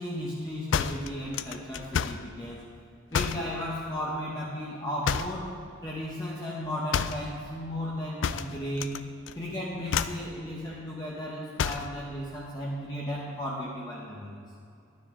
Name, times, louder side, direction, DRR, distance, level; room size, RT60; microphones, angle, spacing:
voice 1, 0.0-2.6 3.1-5.6 5.8-9.0 9.4-14.4, equal, 20° left, -5 dB, 0.9 m, -35 dB
sound 1, 0.7-2.3 3.1-3.5 5.0-5.5 6.9-7.3 8.2-9.0 9.3-9.5 9.9-10.3 11.6-12.0, left 7 dB, 65° left, 0.3 m, -29 dB
12.0 x 9.6 x 3.7 m, 2.4 s
head